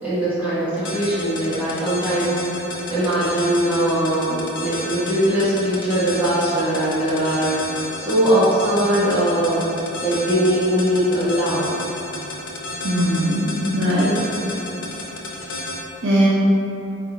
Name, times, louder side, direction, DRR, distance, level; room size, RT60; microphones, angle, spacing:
voice 1, 0.0-9.6 10.0-11.7, right 1 dB, 5° right, -13 dB, 1.4 m, -21 dB
sound 1, 0.8-15.7, left 2 dB, 60° left, 0.7 m, -30 dB
voice 2, 12.8-14.1 16.0-16.3, equal, 60° right, -6 dB, 0.7 m, -19 dB
4.4 x 2.6 x 3.9 m, 2.8 s
head